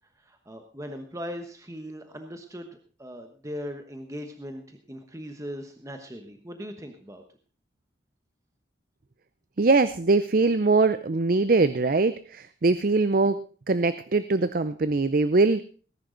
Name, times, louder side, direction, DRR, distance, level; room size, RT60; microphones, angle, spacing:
voice 1, 0.3-7.2, equal, 15° right, 5 dB, 1.1 m, -39 dB
voice 2, 9.6-13.4 13.7-15.6, right 3 dB, 45° right, 13 dB, 0.5 m, -22 dB
19.0 x 10.5 x 3.9 m, 0.39 s
head